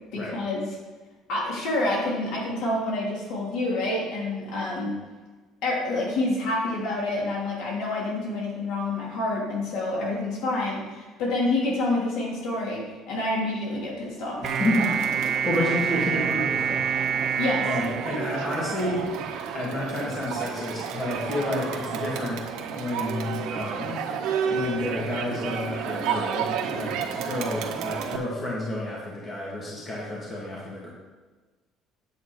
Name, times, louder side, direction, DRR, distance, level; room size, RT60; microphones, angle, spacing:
voice 1, 0.1-0.7 1.3-4.9 5.6-14.4 15.4-15.6 17.4-17.7, left 2 dB, 65° left, -3 dB, 3.3 m, -28 dB
voice 2, 14.4-16.8 17.6-19.1 19.5-22.4 22.8-24.0 24.5-30.9, left 1 dB, 25° left, -5 dB, 2.0 m, -30 dB
sound 1, 14.4-18.9, right 7 dB, 35° right, 0.5 m, -27 dB
Crowd, 14.4-28.2, right 7 dB, 65° right, 1.3 m, -32 dB
9.0 x 8.2 x 4.7 m, 1.3 s
cardioid pair, 175°, 0 cm